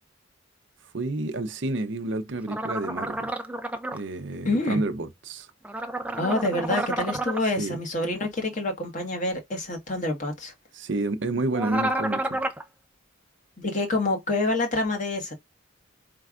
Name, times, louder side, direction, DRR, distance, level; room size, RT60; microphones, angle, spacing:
voice 1, 0.9-3.3 3.9-5.5 7.6-7.8 10.7-12.4, right 2 dB, 65° right, 0.7 m, -29 dB
sound 1, 2.5-4.0 5.6-7.4 11.5-12.6, right 2 dB, 5° right, 0.4 m, -30 dB
voice 2, 4.4-4.8 6.2-10.5 13.6-15.3, left 2 dB, 40° left, 1.4 m, -27 dB
4.7 x 3.3 x 2.4 m
head